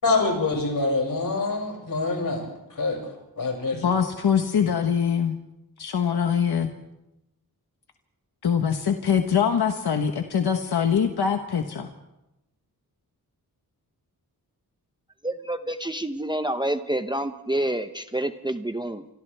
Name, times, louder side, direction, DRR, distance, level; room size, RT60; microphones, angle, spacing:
voice 1, 0.0-3.0 3.4-3.8, left 3 dB, 60° left, 1 dB, 6.8 m, -25 dB
voice 2, 3.8-5.4 5.8-6.7 8.4-11.9, left 7 dB, 90° left, 5 dB, 1.4 m, -23 dB
voice 3, 15.2-19.1, right 1 dB, 10° right, 8 dB, 0.8 m, -28 dB
30.0 x 26.0 x 3.5 m, 0.91 s
wide cardioid pair, 115°, 38 cm